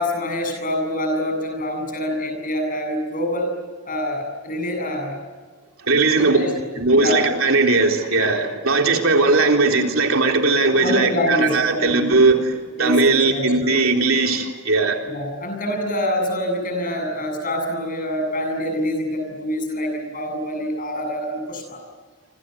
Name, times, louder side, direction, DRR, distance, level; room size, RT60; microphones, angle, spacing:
voice 1, 0.0-3.5 3.8-5.2 6.1-6.5 7.0-7.2 10.8-12.2 12.8-13.7 15.1-21.8, left 1 dB, 40° left, 4 dB, 7.6 m, -25 dB
voice 2, 5.9-6.4 6.8-12.5 12.8-15.0, right 3 dB, 65° right, 2 dB, 3.7 m, -18 dB
28.5 x 26.0 x 8.0 m, 1.5 s
head